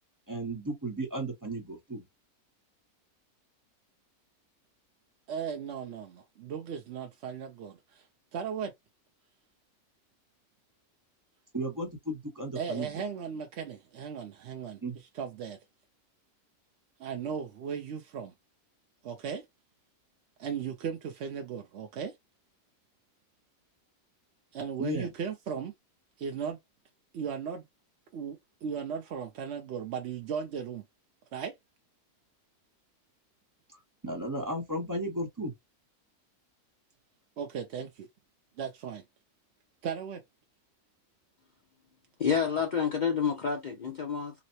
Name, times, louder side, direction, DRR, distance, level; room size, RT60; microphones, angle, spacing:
voice 1, 0.3-2.0 11.5-13.0 14.8-15.0 24.8-25.1 34.0-35.5, right 1 dB, 15° right, 0.7 m, -34 dB
voice 2, 5.3-7.7 8.3-8.7 12.6-14.8 15.2-15.6 17.0-18.3 19.0-19.4 20.4-22.1 24.5-25.7 26.2-26.6 27.1-27.6 28.1-30.8 31.3-31.5 37.4-37.9 38.6-39.0 39.8-40.2, right 7 dB, 65° right, 0.7 m, -36 dB
voice 3, 42.2-44.3, left 6 dB, 70° left, 0.4 m, -28 dB
3.9 x 2.0 x 2.7 m
omnidirectional pair, 1.6 m